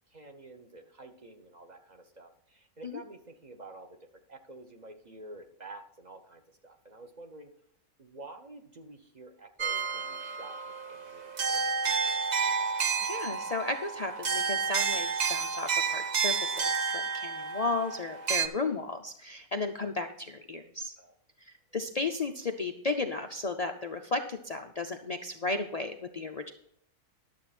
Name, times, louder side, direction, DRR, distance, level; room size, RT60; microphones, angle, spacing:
voice 1, 0.1-7.5 8.0-12.1 21.0-21.1, right 2 dB, 30° right, 5 dB, 1.1 m, -49 dB
sound 1, 9.6-18.5, right 5 dB, 50° right, 0.5 m, -30 dB
voice 2, 13.0-20.9 21.5-26.5, left 3 dB, 80° left, 4 dB, 0.3 m, -34 dB
11.5 x 7.4 x 4.3 m, 0.70 s
omnidirectional pair, 1.6 m